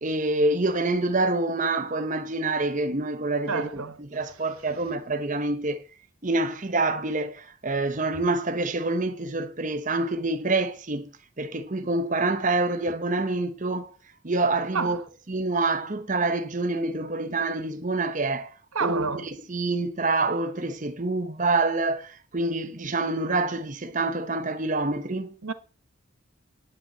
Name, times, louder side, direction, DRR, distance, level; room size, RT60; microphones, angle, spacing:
voice 1, 0.0-5.8 6.2-11.1 11.4-13.9 14.2-15.0 15.3-18.5 18.8-19.0 19.5-25.4, right 2 dB, 35° right, 0.9 m, -26 dB
voice 2, 3.5-4.0 14.7-15.0 18.7-19.3 25.4-25.5, right 5 dB, 85° right, 1.2 m, -29 dB
10.0 x 6.0 x 8.2 m
head